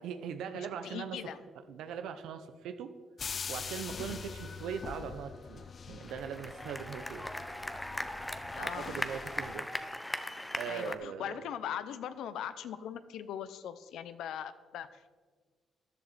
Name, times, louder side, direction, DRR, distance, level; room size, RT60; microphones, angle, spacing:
voice 1, 0.0-1.2 1.7-2.9 3.5-5.6 5.9-7.3 8.6-9.7 10.5-11.4, right 7 dB, 85° right, 8 dB, 0.8 m, -40 dB
voice 2, 0.5-1.4 8.5-9.0 10.7-15.1, left 9 dB, 80° left, 13 dB, 0.7 m, -40 dB
sound 1, 3.2-9.6, left 6 dB, 45° left, 0.4 m, -44 dB
sound 2, 6.0-11.0, left 1 dB, 10° left, 0.9 m, -39 dB
14.0 x 10.5 x 4.3 m, 1.5 s
cardioid pair, 90°, 0 cm